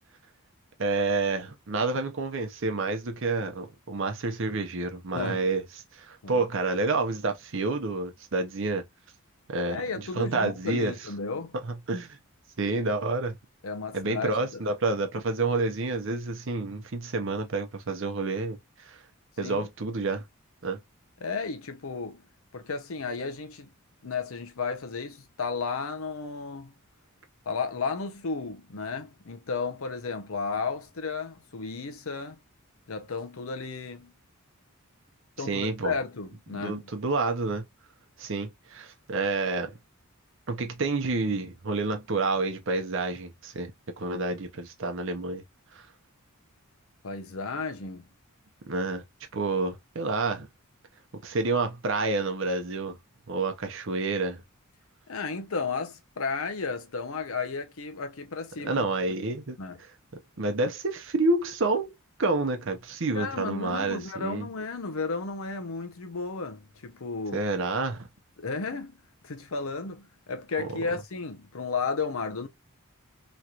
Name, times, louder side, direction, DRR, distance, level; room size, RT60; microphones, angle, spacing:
voice 1, 0.8-5.6 5.9-8.8 9.5-9.8 10.2-10.9 11.6-12.2 12.6-13.3 13.9-19.0 19.4-20.2 20.6-20.8 35.4-35.9 36.5-37.6 38.2-39.8 40.5-43.7 44.0-45.4 45.7-45.8 48.7-49.0 49.3-50.5 51.2-53.0 53.3-54.4 58.6-59.6 60.4-64.5 67.3-68.1, right 3 dB, 55° right, 0.7 m, -29 dB
voice 2, 5.1-5.5 6.2-6.4 9.7-11.5 13.6-14.6 19.4-19.7 21.2-22.2 22.5-23.7 24.0-26.7 27.5-32.4 32.9-34.1 35.4-36.8 47.0-48.1 55.1-58.9 59.6-59.8 63.1-67.5 68.4-69.0 69.2-72.5, left 4 dB, 70° left, 0.7 m, -33 dB
3.1 x 2.9 x 2.4 m
head